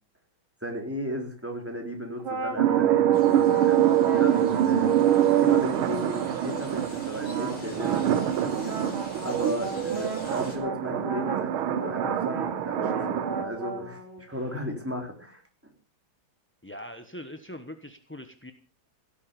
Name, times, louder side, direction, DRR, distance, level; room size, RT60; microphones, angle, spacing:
voice 1, 0.6-4.9 5.4-8.8 9.2-15.4, equal, 5° right, 2 dB, 3.7 m, -35 dB
sound 1, 2.2-6.6 7.2-14.5, right 3 dB, 75° right, 4.1 m, -36 dB
sound 2, 2.6-13.4, right 11 dB, 90° right, 1.8 m, -25 dB
sound 3, 3.1-10.6, left 3 dB, 60° left, 4.0 m, -49 dB
voice 2, 16.6-18.5, left 1 dB, 10° left, 7 dB, 0.6 m, -42 dB
17.0 x 8.4 x 6.9 m, 0.39 s
omnidirectional pair, 2.3 m